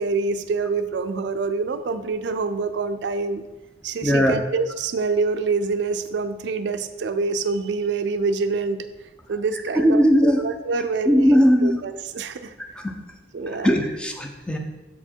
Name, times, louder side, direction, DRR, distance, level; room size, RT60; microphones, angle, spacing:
voice 1, 0.0-3.4 3.8-8.8 9.3-12.5 13.3-13.8, right 4 dB, 65° right, 10 dB, 0.4 m, -26 dB
voice 2, 4.0-4.4 9.8-10.4 11.1-11.8 12.8-12.9 13.6-14.6, equal, 5° left, 2 dB, 0.6 m, -18 dB
6.9 x 4.4 x 4.5 m, 1.1 s
head